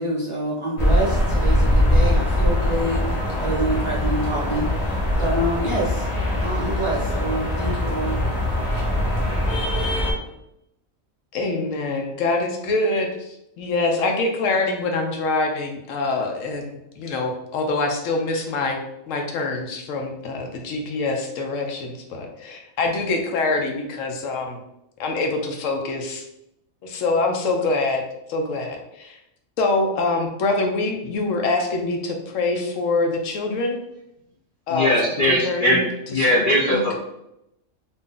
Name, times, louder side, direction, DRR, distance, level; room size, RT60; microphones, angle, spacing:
voice 1, 0.0-6.1 6.4-8.2, right 1 dB, 30° right, -6 dB, 0.6 m, -27 dB
sound 1, 0.8-10.1, left 1 dB, 30° left, 1.0 m, -22 dB
voice 2, 11.3-18.8 19.1-24.6 25.0-26.2 26.8-28.0 28.3-29.2 29.6-33.8 34.7-34.9 35.3-35.8 36.2-36.4 36.7-37.0, left 3 dB, 75° left, 3 dB, 0.9 m, -25 dB
voice 3, 34.7-35.8 36.1-36.9, left 1 dB, 60° left, -2 dB, 0.5 m, -19 dB
2.7 x 2.5 x 3.6 m, 0.83 s
omnidirectional pair, 1.4 m